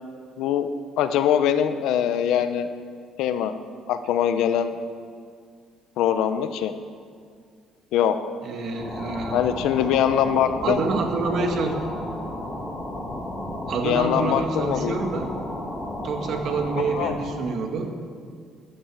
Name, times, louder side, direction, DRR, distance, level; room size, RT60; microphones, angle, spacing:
voice 1, 0.4-0.7 1.0-2.7 3.2-3.5 3.9-4.7 6.0-6.7 7.9-8.2 9.3-10.8 11.4-11.5 13.8-15.0 16.9-17.1, left 9 dB, 80° left, 10 dB, 0.9 m, -22 dB
voice 2, 8.4-9.4 10.6-11.8 13.7-15.4 16.0-17.9, right 4 dB, 55° right, 4 dB, 1.8 m, -27 dB
sound 1, 8.6-17.5, left 1 dB, 15° left, 2.3 m, -33 dB
13.0 x 10.5 x 8.4 m, 2.1 s
cardioid pair, 155°, 0 cm